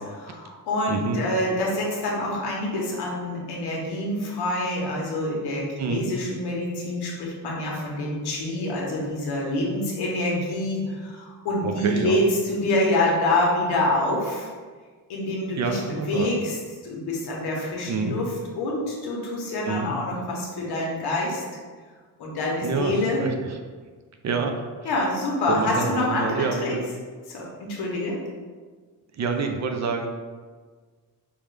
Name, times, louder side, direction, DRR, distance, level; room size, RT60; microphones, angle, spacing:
voice 1, 0.2-14.5 15.1-21.4 22.2-23.2 24.8-26.8 27.3-28.2, left 1 dB, 90° left, -2 dB, 1.1 m, -26 dB
voice 2, 11.6-12.2 15.6-16.4 17.9-18.1 19.7-20.0 22.6-23.3 24.2-24.6 25.5-26.9 29.2-30.1, right 4 dB, 45° right, 4 dB, 0.5 m, -27 dB
5.4 x 2.3 x 3.3 m, 1.5 s
cardioid pair, 110°, 38 cm